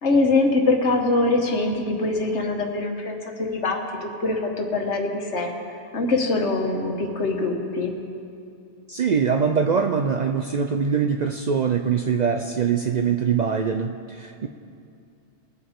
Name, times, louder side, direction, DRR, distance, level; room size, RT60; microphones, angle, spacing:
voice 1, 0.0-5.5 5.9-7.9, left 2 dB, 75° left, 2 dB, 1.6 m, -23 dB
voice 2, 8.9-14.5, right 6 dB, 55° right, 4 dB, 0.5 m, -23 dB
21.0 x 8.5 x 3.7 m, 2.5 s
omnidirectional pair, 1.2 m